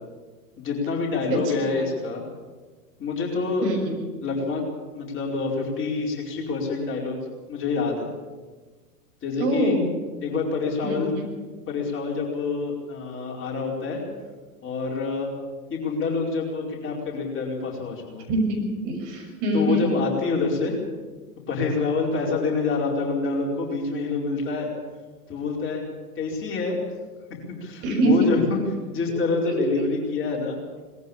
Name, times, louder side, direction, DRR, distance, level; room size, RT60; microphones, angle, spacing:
voice 1, 0.6-2.3 3.0-3.7 4.2-4.6 4.9-7.2 7.5-8.1 9.2-9.8 10.2-11.1 11.7-14.0 14.6-15.3 15.7-18.3 19.5-20.8 21.5-24.7 25.3-25.8 26.2-26.8 27.6-28.6 28.9-30.6, left 4 dB, 25° left, -2 dB, 4.9 m, -26 dB
voice 2, 9.4-9.9 10.8-11.2 18.3-20.0 27.8-28.3 29.4-29.6, right 1 dB, 45° right, 1 dB, 6.6 m, -24 dB
20.5 x 15.0 x 8.7 m, 1.4 s
figure-of-eight pair, 105°, 47 cm